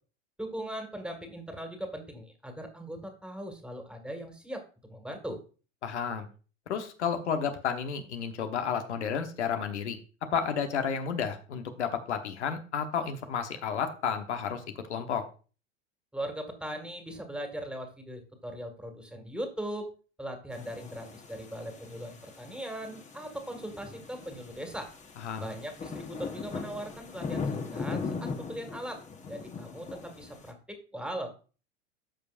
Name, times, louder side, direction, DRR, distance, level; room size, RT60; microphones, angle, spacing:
voice 1, 0.4-4.6 4.9-5.4 16.1-19.9 20.2-24.9 25.4-29.0 29.3-31.3, right 1 dB, 5° right, 5 dB, 1.8 m, -39 dB
voice 2, 5.8-6.3 6.7-10.0 10.3-14.6 14.9-15.3 25.2-25.4, left 7 dB, 85° left, 7 dB, 1.1 m, -31 dB
sound 1, 20.5-30.5, left 4 dB, 20° left, 1.2 m, -40 dB
13.5 x 5.0 x 2.5 m, 0.36 s
hypercardioid pair, 100°, 34 cm